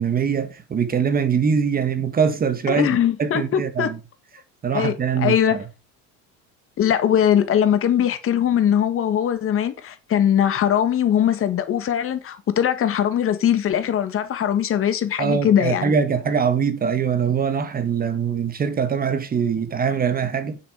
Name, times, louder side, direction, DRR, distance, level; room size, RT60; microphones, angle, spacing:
voice 1, 0.0-4.0 4.6-5.6 15.2-20.6, right 6 dB, 25° right, 1.6 m, -23 dB
voice 2, 2.7-3.9 4.7-5.6 6.8-15.9, left 9 dB, 40° left, 1.7 m, -21 dB
9.4 x 7.4 x 5.0 m
cardioid pair, 140°, 35 cm